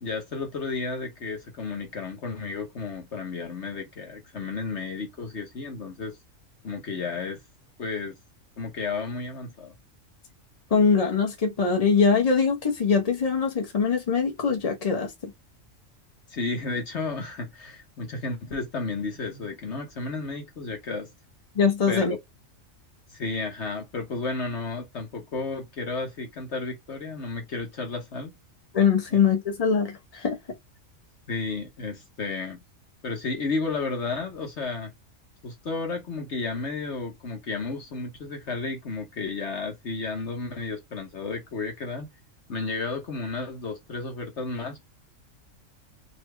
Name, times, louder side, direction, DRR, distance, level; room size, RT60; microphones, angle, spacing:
voice 1, 0.0-6.2 6.6-7.4 7.8-8.2 8.6-9.8 16.3-21.1 21.9-22.2 23.1-28.3 31.3-32.6 33.0-34.9 35.4-42.1 42.5-44.8, left 3 dB, 60° left, 1.3 m, -32 dB
voice 2, 10.7-15.3 21.5-22.1 28.7-30.4, left 5 dB, 30° left, 1.3 m, -22 dB
4.0 x 2.9 x 3.3 m
omnidirectional pair, 1.4 m